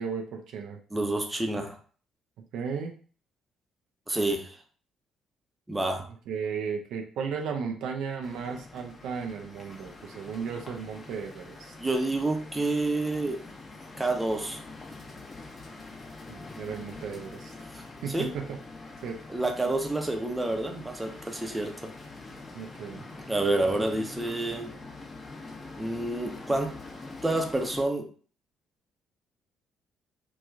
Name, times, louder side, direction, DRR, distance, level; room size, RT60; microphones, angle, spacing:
voice 1, 0.0-0.8 2.5-2.9 6.3-11.7 16.3-17.5 18.0-18.6 19.0-19.2 22.5-23.1, right 6 dB, 70° right, 2 dB, 0.4 m, -35 dB
voice 2, 0.9-1.8 4.1-4.6 5.7-6.0 11.8-13.4 14.0-14.6 17.7-18.3 19.3-21.7 23.3-24.7 25.8-26.7 27.2-28.1, right 2 dB, 15° right, 3 dB, 0.7 m, -28 dB
sound 1, 8.2-27.8, left 3 dB, 30° left, 0.8 m, -45 dB
3.0 x 2.3 x 2.3 m, 0.42 s
hypercardioid pair, 50°, 0 cm